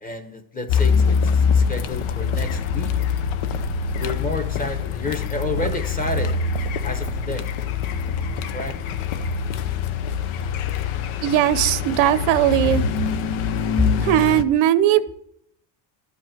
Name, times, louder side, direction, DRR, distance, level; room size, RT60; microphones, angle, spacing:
voice 1, 0.0-3.0 4.0-6.4 6.8-7.5 8.5-8.8, left 2 dB, 15° left, 7 dB, 1.0 m, -30 dB
Car, 0.7-14.4, left 6 dB, 80° left, 0.9 m, -24 dB
voice 2, 11.2-12.8 14.0-15.2, right 12 dB, 80° right, 14 dB, 0.9 m, -19 dB
12.5 x 5.5 x 8.8 m, 0.70 s
cardioid pair, 160°, 48 cm